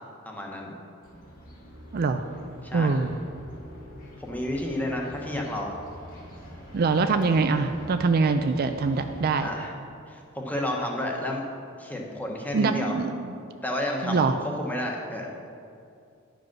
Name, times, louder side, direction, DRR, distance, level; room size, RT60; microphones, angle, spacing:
voice 1, 0.2-0.7 2.6-2.9 4.2-5.7 9.4-9.7 10.1-11.4 11.8-13.0 13.6-14.3 14.6-15.3, left 1 dB, 10° left, -1 dB, 1.1 m, -31 dB
sound 1, 1.0-9.3, equal, 45° left, 2.0 m, -46 dB
voice 2, 1.9-2.3 2.7-3.1 6.7-9.5 12.5-13.4 14.0-14.4, right 4 dB, 50° right, 8 dB, 0.4 m, -24 dB
10.5 x 5.1 x 5.9 m, 2.4 s
head